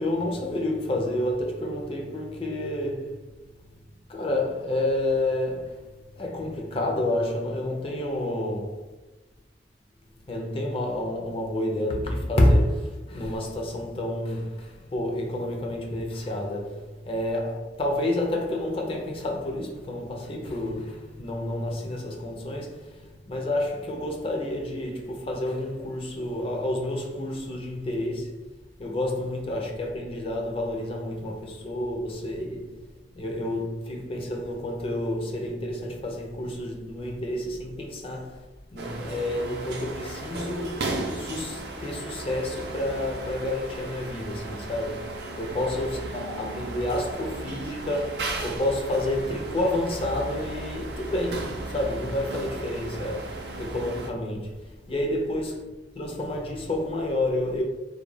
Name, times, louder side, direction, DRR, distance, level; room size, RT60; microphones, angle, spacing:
voice 1, 0.0-3.3 4.1-5.8 6.2-8.9 10.3-28.5 28.8-32.7 33.1-38.4 38.7-55.7 56.0-57.6, left 1 dB, 30° left, 0.4 m, -29 dB
sound 1, 38.8-54.1, right 2 dB, 60° right, 0.4 m, -36 dB
2.2 x 2.1 x 3.2 m
head